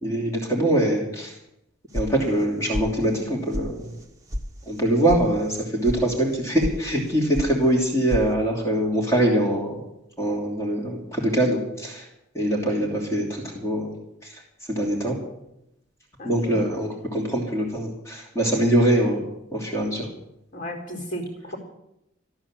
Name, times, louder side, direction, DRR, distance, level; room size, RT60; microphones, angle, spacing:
voice 1, 0.0-1.3 1.9-3.9 4.7-9.8 10.2-12.0 12.3-13.9 14.7-15.2 16.2-19.2 19.5-20.1, right 1 dB, 15° left, -1 dB, 2.9 m, -23 dB
sound 1, 1.9-2.5 2.7-3.3 3.5-3.6 4.0-4.4 4.7-5.2 5.5-6.0 6.3-6.8 7.0-7.5 7.8-8.3, equal, 15° right, 1.3 m, -30 dB
voice 2, 16.2-16.6 20.5-21.6, equal, 40° left, 1 dB, 3.9 m, -34 dB
14.0 x 12.0 x 7.4 m, 0.84 s
head